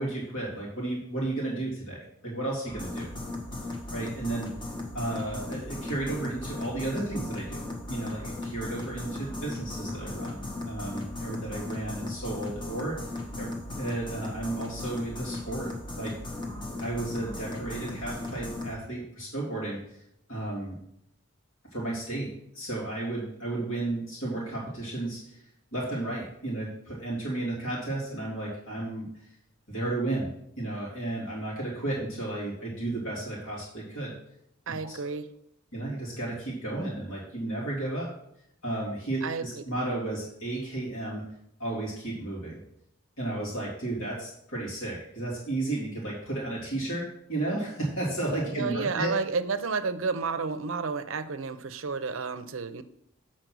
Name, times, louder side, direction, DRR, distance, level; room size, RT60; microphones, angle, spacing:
voice 1, 0.0-3.1 3.9-4.6 4.9-13.1 13.4-13.5 13.7-16.2 16.8-20.0 20.3-20.8 21.7-25.4 25.7-29.1 29.7-30.3 30.6-34.2 34.7-35.0 35.7-38.1 38.6-41.3 41.6-42.6 43.2-49.1, right 2 dB, 70° left, -6 dB, 3.0 m, -33 dB
sound 1, 2.7-18.8, left 2 dB, 20° left, 1.1 m, -37 dB
voice 2, 34.7-35.3 39.2-39.6 48.5-52.8, right 4 dB, 65° right, 11 dB, 0.6 m, -31 dB
8.0 x 4.4 x 6.1 m, 0.76 s
head